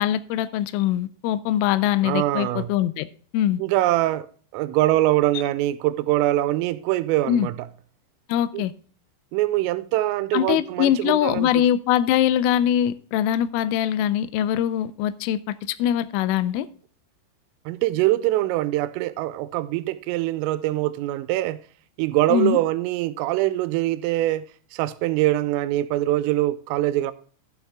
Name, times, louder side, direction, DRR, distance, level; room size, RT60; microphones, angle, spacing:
voice 1, 0.0-3.1 3.3-3.6 7.3-7.5 8.3-8.7 10.3-16.7 22.3-22.6, left 11 dB, 85° left, 3.1 m, -22 dB
voice 2, 2.0-2.7 3.6-4.3 4.5-7.7 8.5-8.6 9.3-11.5 17.7-21.6 22.0-24.5 24.7-27.1, right 15 dB, 90° right, 3.3 m, -23 dB
11.5 x 7.1 x 3.5 m
omnidirectional pair, 5.8 m